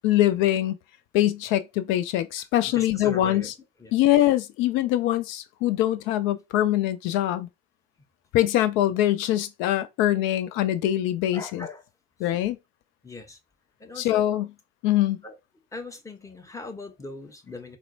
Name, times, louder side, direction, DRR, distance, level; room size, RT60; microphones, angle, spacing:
voice 1, 0.0-0.8 1.1-3.5 3.9-7.5 8.3-11.7 12.2-12.6 14.0-14.5 14.8-15.2, left 13 dB, 65° left, 0.5 m, -23 dB
voice 2, 2.4-3.5 3.8-3.9 11.3-11.8 13.0-13.4 13.8-14.2 15.2-15.4 15.7-17.8, left 3 dB, 15° left, 1.0 m, -40 dB
4.1 x 2.0 x 2.7 m
hypercardioid pair, 60°, 21 cm